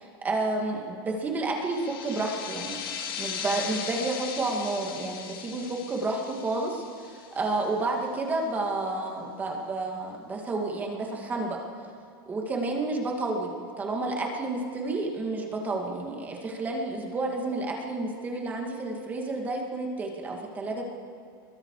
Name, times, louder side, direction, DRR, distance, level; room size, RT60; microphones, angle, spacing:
voice 1, 0.0-11.6 12.3-20.8, right 2 dB, 15° right, 0 dB, 2.4 m, -30 dB
sound 1, 1.5-7.8, left 7 dB, 85° left, 3.0 m, -38 dB
29.0 x 22.5 x 5.0 m, 2.2 s
supercardioid pair, 170°, 12 cm